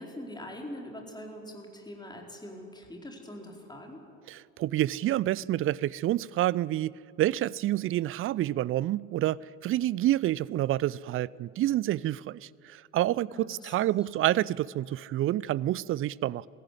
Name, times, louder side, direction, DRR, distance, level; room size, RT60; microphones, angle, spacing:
voice 1, 0.0-4.0 13.3-14.0, left 1 dB, 10° left, 4.6 m, -43 dB
voice 2, 4.3-16.5, right 14 dB, 30° right, 0.4 m, -28 dB
22.0 x 15.5 x 9.7 m
figure-of-eight pair, 55°, 41 cm